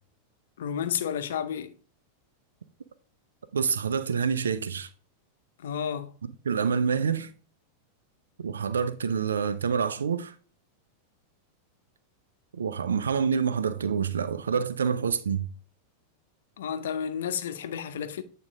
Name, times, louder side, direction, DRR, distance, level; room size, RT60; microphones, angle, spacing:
voice 1, 0.6-1.8 5.6-6.1 16.6-18.2, left 8 dB, 60° left, 0.6 m, -31 dB
voice 2, 3.5-4.9 6.5-7.3 8.4-10.3 12.5-15.5, right 6 dB, 70° right, 0.4 m, -27 dB
8.7 x 3.7 x 3.6 m
figure-of-eight pair, 90°, 0 cm